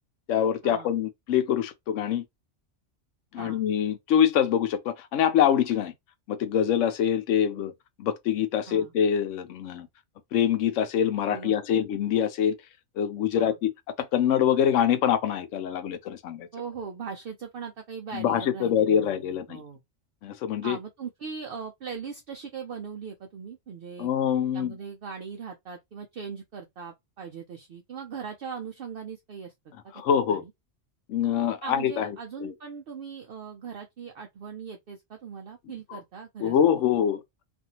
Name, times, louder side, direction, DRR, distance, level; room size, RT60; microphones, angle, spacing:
voice 1, 0.3-2.2 3.3-5.9 6.3-7.7 8.0-9.9 10.3-12.6 13.0-13.7 14.0-16.5 18.1-19.6 20.2-20.8 24.0-24.7 30.0-30.4 31.1-32.1 32.4-32.5 35.9-36.0 36.4-37.2, left 9 dB, 85° left, 0.9 m, -25 dB
voice 2, 11.3-11.8 13.3-13.6 16.5-19.8 20.6-24.1 24.5-29.5 30.3-30.5 31.6-36.6 36.9-37.0, right 6 dB, 60° right, 0.6 m, -40 dB
2.6 x 2.4 x 2.7 m
omnidirectional pair, 1.3 m